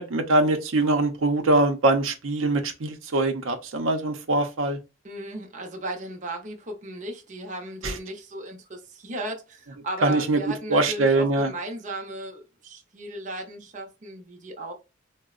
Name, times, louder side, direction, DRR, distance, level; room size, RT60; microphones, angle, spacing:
voice 1, 0.0-4.8 7.8-8.0 10.0-10.4 10.7-11.5, right 2 dB, 85° right, 0.6 m, -23 dB
voice 2, 5.0-14.7, right 1 dB, 35° right, 0.6 m, -36 dB
3.8 x 2.0 x 2.3 m
head